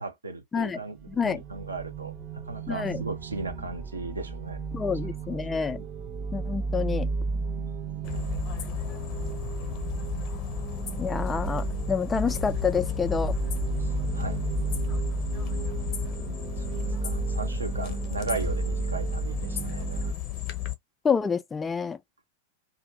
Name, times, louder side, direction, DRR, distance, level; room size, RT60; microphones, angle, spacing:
voice 1, 0.0-1.0 1.2-2.1 2.4-4.6 13.8-13.9 14.1-14.4 16.6-20.1, right 3 dB, 75° right, 0.7 m, -36 dB
sound 1, 0.8-20.1, right 4 dB, 35° right, 0.7 m, -32 dB
voice 2, 1.1-1.4 2.7-3.0 4.7-5.8 6.3-7.1 11.0-13.4 21.0-22.0, left 6 dB, 15° left, 0.3 m, -28 dB
sound 2, 8.0-20.7, left 14 dB, 40° left, 0.7 m, -35 dB
2.6 x 2.4 x 3.0 m
figure-of-eight pair, 90°, 0 cm